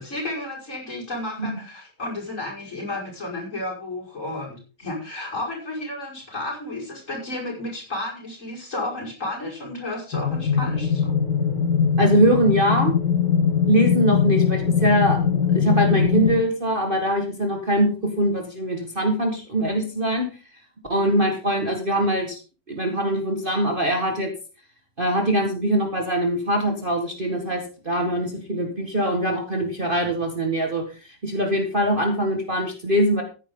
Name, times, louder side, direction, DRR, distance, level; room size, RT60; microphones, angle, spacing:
voice 1, 0.0-11.1, left 2 dB, 45° left, -2 dB, 5.8 m, -32 dB
sound 1, 10.1-16.4, left 7 dB, 75° left, 2.6 m, -21 dB
voice 2, 12.0-12.9 13.7-15.2 15.5-20.3 20.9-22.4 22.7-24.3 25.0-33.2, right 1 dB, 30° right, 2 dB, 1.9 m, -22 dB
15.0 x 9.8 x 3.8 m, 0.35 s
omnidirectional pair, 1.9 m